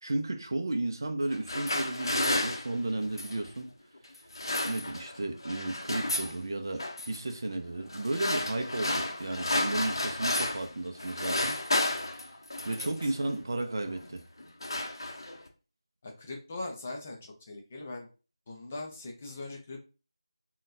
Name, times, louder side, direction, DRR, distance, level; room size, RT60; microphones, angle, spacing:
voice 1, 0.0-3.7 4.6-11.5 12.1-12.3 12.7-14.2, right 2 dB, 40° right, 0.5 m, -33 dB
sound 1, 1.3-3.5 4.2-5.2 5.4-6.4 6.8-7.2 7.9-10.7 11.0-13.1 13.9-14.1 14.4-15.5, left 2 dB, 50° left, 0.7 m, -32 dB
voice 2, 16.0-17.2 17.5-18.1 18.5-19.9, left 2 dB, 15° left, 0.4 m, -40 dB
3.8 x 2.2 x 2.6 m
figure-of-eight pair, 175°, 3 cm